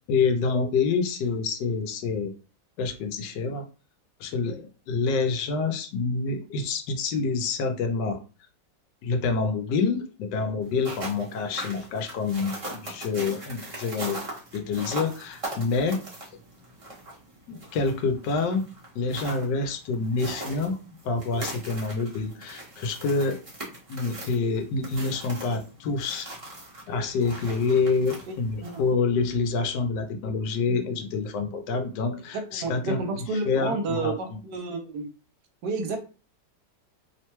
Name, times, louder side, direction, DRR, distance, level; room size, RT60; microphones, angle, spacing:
voice 1, 0.1-2.3 2.8-3.6 4.2-8.2 9.0-14.3 14.5-16.0 17.5-18.6 18.9-20.8 21.0-23.4 23.9-26.3 26.9-34.4, left 4 dB, 75° left, 6 dB, 1.2 m, -27 dB
sound 1, 10.6-28.9, right 1 dB, 35° right, 0.5 m, -40 dB
voice 2, 32.5-35.1 35.6-36.0, right 3 dB, 70° right, 4 dB, 1.2 m, -30 dB
3.1 x 2.1 x 2.9 m, 0.34 s
omnidirectional pair, 1.9 m